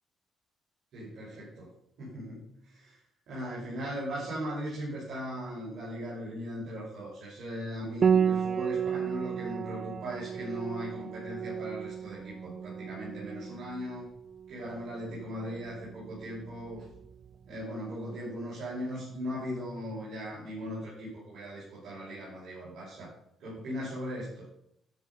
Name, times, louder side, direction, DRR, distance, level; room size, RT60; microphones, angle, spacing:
voice 1, 0.9-1.7 2.0-3.0 3.3-14.1 14.5-16.8 17.5-23.1 23.4-24.4, equal, 70° right, -8 dB, 5.3 m, -38 dB
Piano, 8.0-17.3, right 7 dB, 45° right, 0.3 m, -33 dB
12.5 x 6.4 x 5.5 m, 0.76 s
cardioid pair, 90°, 0 cm